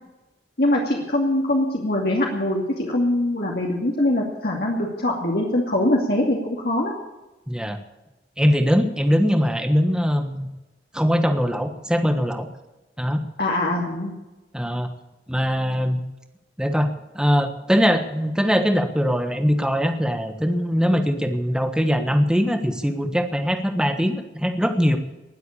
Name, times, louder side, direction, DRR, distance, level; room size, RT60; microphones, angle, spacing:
voice 1, 0.6-6.9 13.4-14.1, left 1 dB, 60° left, -2 dB, 2.5 m, -23 dB
voice 2, 7.5-7.8 8.4-10.5 10.9-12.5 13.0-13.2 14.5-14.9 15.3-16.0 16.6-16.9 17.1-25.0, equal, 5° right, 7 dB, 1.3 m, -21 dB
19.5 x 8.1 x 8.5 m, 1.1 s
head